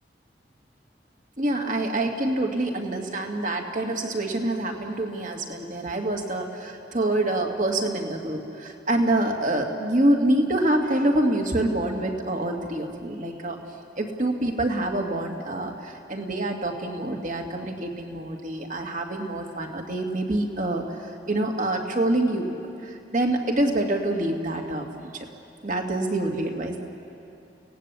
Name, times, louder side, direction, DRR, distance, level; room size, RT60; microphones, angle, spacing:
voice 1, 1.4-13.6 14.0-25.3 25.6-26.8, right 1 dB, 45° right, 2 dB, 2.3 m, -26 dB
30.0 x 18.0 x 8.4 m, 2.7 s
head